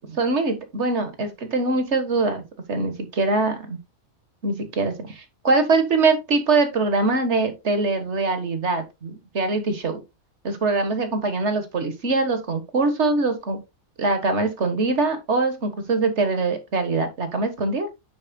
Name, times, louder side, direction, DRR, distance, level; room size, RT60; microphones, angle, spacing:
voice 1, 0.2-3.8 4.4-10.0 10.4-13.6 14.0-17.9, right 3 dB, 50° right, 1.8 m, -23 dB
9.9 x 6.5 x 2.4 m
omnidirectional pair, 1.5 m